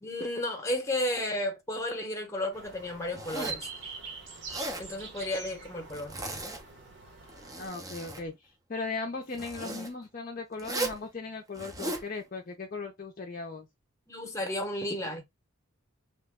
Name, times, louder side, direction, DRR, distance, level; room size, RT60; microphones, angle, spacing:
voice 1, 0.0-3.9 4.8-6.1 14.1-15.2, left 1 dB, 15° left, 0.8 m, -33 dB
sound 1, 2.5-7.7, right 5 dB, 55° right, 0.9 m, -44 dB
Zipper (clothing), 3.1-3.7 4.3-4.9 5.9-6.6 7.2-8.2 9.3-9.9 10.6-11.0 11.5-12.1, right 2 dB, 15° right, 0.5 m, -37 dB
voice 2, 7.6-13.7, left 3 dB, 40° left, 0.5 m, -38 dB
2.9 x 2.1 x 3.4 m
head